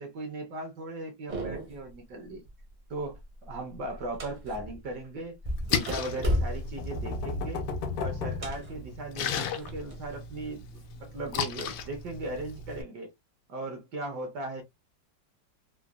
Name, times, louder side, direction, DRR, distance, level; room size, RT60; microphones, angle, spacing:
voice 1, 0.0-2.4 2.9-7.7 8.0-13.1 13.5-14.6, right 2 dB, 70° right, 1.3 m, -38 dB
sound 1, 1.3-1.9 2.3-2.7 3.0-4.9 5.4-10.1 10.4-11.4 12.0-12.8, equal, 40° right, 0.6 m, -35 dB
Splash splatter, 5.5-12.8, left 7 dB, 85° left, 1.3 m, -36 dB
sound 2, 6.4-9.3, left 3 dB, 70° left, 1.0 m, -35 dB
3.8 x 2.0 x 2.3 m
omnidirectional pair, 2.0 m